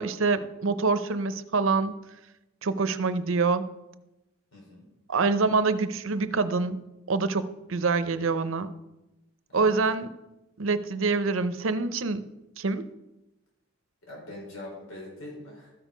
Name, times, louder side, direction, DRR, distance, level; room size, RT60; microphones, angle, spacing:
voice 1, 0.0-2.0 2.6-3.7 5.1-6.8 7.1-8.7 9.5-10.1 10.6-12.2 12.6-12.9, right 4 dB, 70° right, 12 dB, 0.6 m, -26 dB
voice 2, 4.5-4.8 9.5-9.7 14.0-15.7, left 1 dB, 80° left, -3 dB, 4.0 m, -42 dB
13.5 x 6.4 x 5.1 m, 0.97 s
head